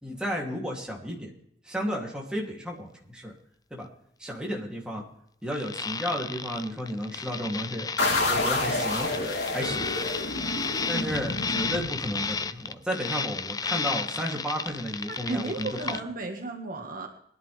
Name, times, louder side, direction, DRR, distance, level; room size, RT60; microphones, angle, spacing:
voice 1, 0.0-1.3 1.6-3.3 3.7-3.9 4.2-5.0 5.4-7.9 8.3-9.1 9.5-9.9 10.9-16.0, equal, 5° right, -2 dB, 3.1 m, -33 dB
sound 1, 5.5-16.0, left 5 dB, 20° left, 0.5 m, -33 dB
sound 2, 8.0-12.5, left 2 dB, 70° left, 3.3 m, -29 dB
voice 2, 15.1-17.1, right 2 dB, 50° right, 3 dB, 1.9 m, -34 dB
23.0 x 11.0 x 3.6 m, 0.71 s
head